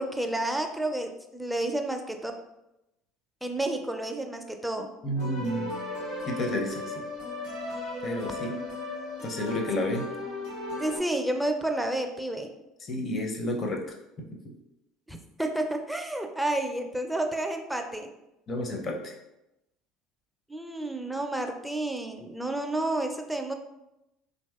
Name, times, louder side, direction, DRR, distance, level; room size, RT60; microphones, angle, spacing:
voice 1, 0.0-2.3 3.4-4.9 10.8-12.5 15.1-18.1 20.5-23.5, right 1 dB, 5° right, 4 dB, 0.4 m, -30 dB
voice 2, 5.0-5.7 6.3-7.0 8.0-8.6 9.2-10.1 12.8-14.3 18.5-19.1, left 1 dB, 40° left, 1 dB, 0.6 m, -31 dB
sound 1, 5.1-11.0, left 2 dB, 90° left, 1.3 m, -36 dB
2.9 x 2.7 x 2.3 m, 0.90 s
hypercardioid pair, 70°, 0 cm